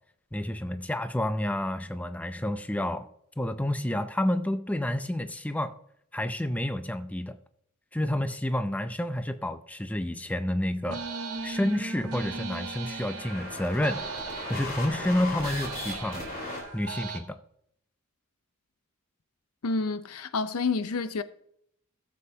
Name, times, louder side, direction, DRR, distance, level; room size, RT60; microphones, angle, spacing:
voice 1, 0.3-3.1 3.4-5.7 6.1-7.4 7.9-11.1 11.4-14.1 14.5-16.2 16.7-17.4, left 1 dB, 5° left, 0.4 m, -29 dB
sound 1, 10.9-17.2, right 4 dB, 90° right, 1.6 m, -38 dB
sound 2, 12.8-16.6, left 2 dB, 40° left, 3.5 m, -37 dB
voice 2, 19.6-21.2, left 4 dB, 85° left, 0.6 m, -29 dB
18.0 x 7.4 x 2.8 m
head